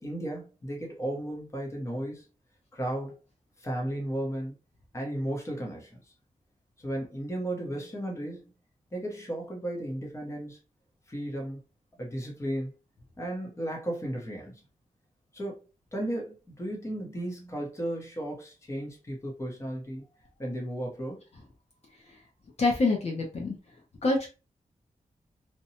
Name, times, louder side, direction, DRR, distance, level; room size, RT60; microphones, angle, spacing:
voice 1, 0.0-2.2 2.7-3.2 3.6-4.5 4.9-6.0 6.8-8.5 8.9-10.6 11.1-11.6 12.0-12.7 13.2-14.6 15.3-15.6 15.9-20.0 20.4-21.2, right 1 dB, 20° left, 0.8 m, -34 dB
voice 2, 22.6-23.5 24.0-24.3, left 3 dB, 55° left, 0.6 m, -25 dB
2.8 x 2.2 x 2.7 m
wide cardioid pair, 160°, 14 cm